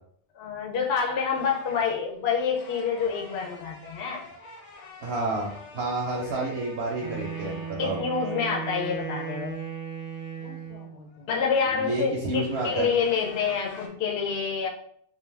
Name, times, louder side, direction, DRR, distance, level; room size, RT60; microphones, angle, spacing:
voice 1, 0.3-4.2 7.8-9.6 11.3-14.7, left 6 dB, 80° left, -1 dB, 0.8 m, -27 dB
sound 1, 1.3-7.8 10.4-11.3 12.3-13.9, left 2 dB, 55° left, 0.5 m, -47 dB
voice 2, 5.0-8.0 11.7-12.9, right 2 dB, 80° right, -3 dB, 0.8 m, -30 dB
Wind instrument woodwind instrument, 7.0-11.0, right 6 dB, 25° right, 0.4 m, -36 dB
2.4 x 2.2 x 3.2 m, 0.64 s
omnidirectional pair, 1.0 m